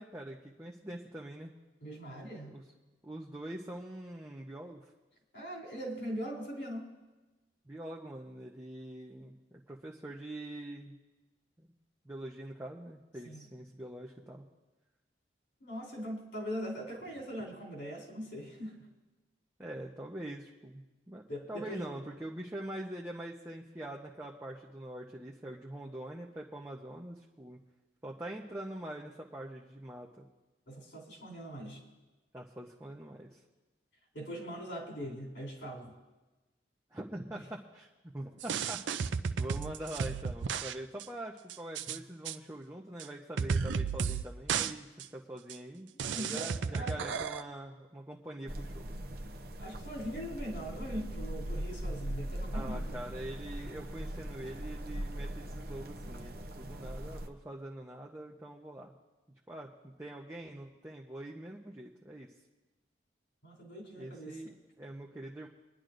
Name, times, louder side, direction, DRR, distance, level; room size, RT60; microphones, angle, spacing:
voice 1, 0.0-1.5 2.5-2.6 3.0-4.9 7.7-11.0 11.6-11.7 12.0-14.4 19.6-21.2 21.5-27.6 28.0-30.3 32.3-33.4 36.9-37.9 38.1-39.1 39.4-44.9 45.1-48.9 52.5-58.9 59.5-62.3 64.0-65.5, right 1 dB, 15° right, -2 dB, 0.7 m, -44 dB
voice 2, 1.8-2.5 5.3-6.9 13.2-13.4 15.6-18.8 21.3-21.9 30.7-31.8 34.1-35.9 41.9-42.0 46.1-47.1 49.6-53.0 63.4-64.5, equal, 75° left, -1 dB, 3.3 m, -41 dB
sound 1, 38.4-40.7 41.0-41.1 41.5-42.0 42.3-42.4 43.0-43.1 43.4-44.2 44.5-44.7 45.0-45.1 45.5-45.6 46.0-47.4, right 6 dB, 85° right, 0.5 m, -33 dB
sound 2, 48.5-57.3, right 1 dB, 55° right, 0.8 m, -40 dB
25.0 x 10.5 x 2.6 m, 1.1 s
head